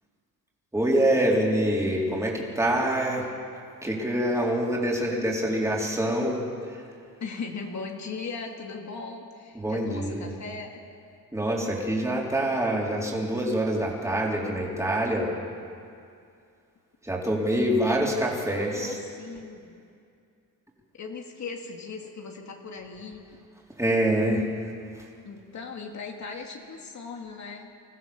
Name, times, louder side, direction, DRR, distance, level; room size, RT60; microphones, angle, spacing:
voice 1, 0.7-3.3 3.8-6.8 9.5-10.3 11.3-15.3 17.0-19.0 23.7-25.1, right 1 dB, 10° right, -3 dB, 4.3 m, -26 dB
voice 2, 7.2-10.8 18.5-19.8 20.9-23.3 25.2-27.7, left 4 dB, 50° left, 1 dB, 2.5 m, -38 dB
26.0 x 15.0 x 7.2 m, 2.4 s
cardioid pair, 95°, 36 cm